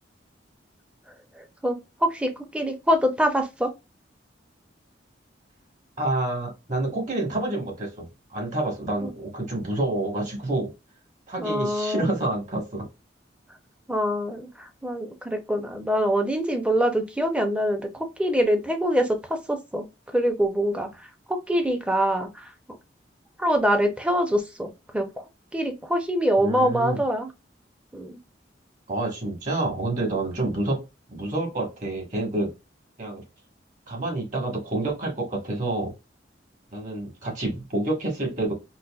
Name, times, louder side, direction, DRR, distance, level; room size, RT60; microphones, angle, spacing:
voice 1, 2.0-3.7 9.0-9.1 11.4-12.1 13.9-19.9 20.1-20.9 21.3-22.5 23.4-25.2 25.5-27.3 27.9-28.2, equal, 5° right, 0.5 m, -24 dB
voice 2, 6.0-8.1 8.3-10.7 11.3-12.9 26.4-27.0 28.9-30.8 31.1-32.5 33.0-33.2 33.9-35.9 36.7-38.5, right 2 dB, 45° right, 1.3 m, -28 dB
4.0 x 2.4 x 2.3 m
head